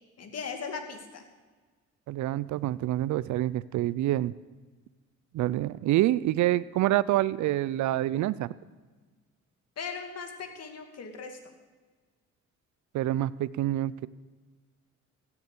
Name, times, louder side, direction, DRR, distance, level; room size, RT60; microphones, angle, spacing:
voice 1, 0.2-1.2 9.8-11.4, left 5 dB, 55° left, 4 dB, 2.4 m, -38 dB
voice 2, 2.1-4.3 5.3-8.5 12.9-14.1, right 14 dB, 70° right, 18 dB, 0.5 m, -27 dB
16.5 x 7.0 x 8.4 m, 1.4 s
cardioid pair, 90°, 30 cm